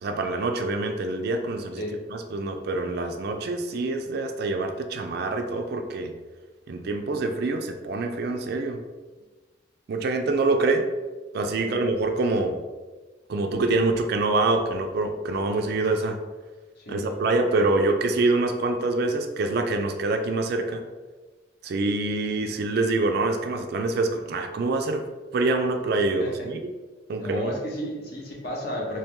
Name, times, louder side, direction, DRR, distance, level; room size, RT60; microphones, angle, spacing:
voice 1, 0.0-1.8 2.1-6.1 6.7-8.8 9.9-10.9 11.3-12.6 13.3-16.2 16.9-20.8 21.6-25.1 25.3-26.7 27.1-27.6, right 2 dB, 50° right, 6 dB, 0.3 m, -25 dB
voice 2, 11.5-11.9 16.8-17.2 26.2-26.5 27.2-29.0, equal, 50° left, -2 dB, 0.8 m, -33 dB
3.0 x 2.9 x 3.5 m, 1.3 s
head